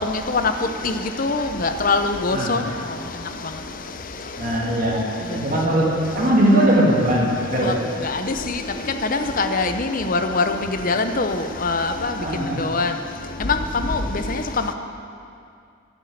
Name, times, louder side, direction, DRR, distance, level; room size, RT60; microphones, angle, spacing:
voice 1, 0.1-0.4 0.8-0.9 1.2-2.6 7.6-7.7 8.1-8.2 8.5-8.6 9.1-10.5 10.8-12.1 12.6-12.9 13.4-13.6 13.9-14.4, left 3 dB, 40° left, 7 dB, 0.7 m, -22 dB
voice 2, 2.3-2.6 4.4-7.7 12.2-12.6, right 1 dB, 40° right, -4 dB, 2.2 m, -20 dB
10.5 x 8.2 x 9.3 m, 2.4 s
head